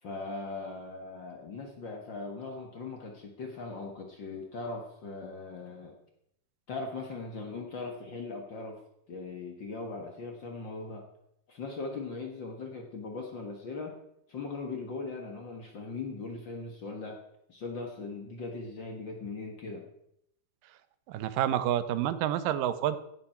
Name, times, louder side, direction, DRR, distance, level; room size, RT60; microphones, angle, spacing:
voice 1, 0.0-6.0 6.7-8.8 9.1-11.1 11.5-13.9 14.3-17.2 17.5-19.9, left 3 dB, 45° left, 3 dB, 1.6 m, -39 dB
voice 2, 21.1-23.0, right 11 dB, 90° right, 13 dB, 2.6 m, -28 dB
17.0 x 7.4 x 5.7 m, 0.76 s
omnidirectional pair, 3.8 m